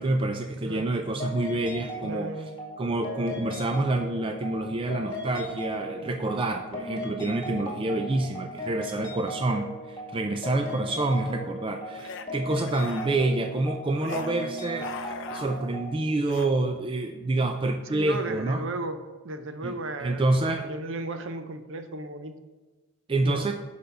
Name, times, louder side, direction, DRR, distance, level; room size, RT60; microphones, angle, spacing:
voice 1, 0.0-2.3 2.8-18.6 19.6-19.7 20.0-20.7 23.1-23.5, right 2 dB, 25° right, 5 dB, 0.3 m, -27 dB
voice 2, 0.6-0.9 2.0-2.6 17.9-22.3 23.2-23.5, right 2 dB, 60° right, 8 dB, 0.7 m, -35 dB
sound 1, 1.2-16.0, equal, 25° left, 1.8 m, -37 dB
sound 2, 11.9-12.3 12.6-13.3 14.0-14.3 14.7-15.8 16.2-16.5, left 5 dB, 55° left, 0.5 m, -40 dB
6.8 x 5.1 x 6.6 m, 1.2 s
head